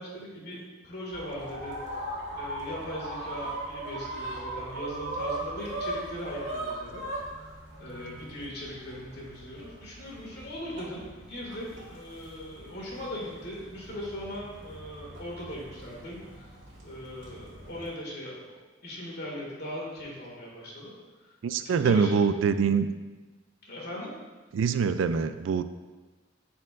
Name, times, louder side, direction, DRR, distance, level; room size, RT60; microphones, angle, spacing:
voice 1, 0.0-2.0 2.3-7.0 7.8-16.5 16.8-18.6 18.8-20.9 21.2-21.3 21.6-22.1 23.7-24.1, equal, 60° left, -4 dB, 1.9 m, -39 dB
sound 1, 1.1-17.9, right 1 dB, 70° right, 1.6 m, -39 dB
voice 2, 21.4-22.9 24.5-25.6, right 6 dB, 85° right, 11 dB, 0.3 m, -24 dB
10.0 x 4.4 x 2.5 m, 1.3 s
head